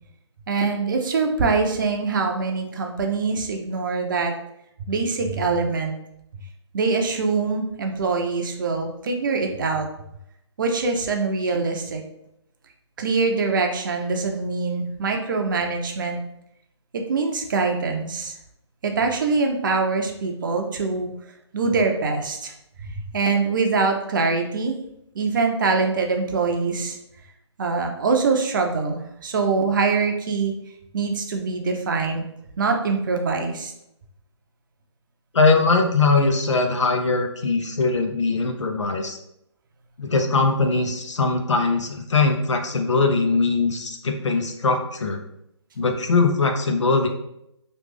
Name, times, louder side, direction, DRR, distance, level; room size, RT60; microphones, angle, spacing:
voice 1, 0.5-4.3 4.9-6.0 6.7-9.9 10.6-12.0 13.0-16.2 16.9-18.3 18.8-21.1 21.5-22.5 23.1-24.8 25.1-27.0 27.6-30.5 30.9-32.2 32.6-33.7, right 4 dB, 45° right, 3 dB, 0.6 m, -23 dB
voice 2, 35.3-39.2 40.0-45.2 45.8-47.1, left 3 dB, 75° left, 4 dB, 0.7 m, -21 dB
3.2 x 2.5 x 3.3 m, 0.79 s
hypercardioid pair, 155°, 15 cm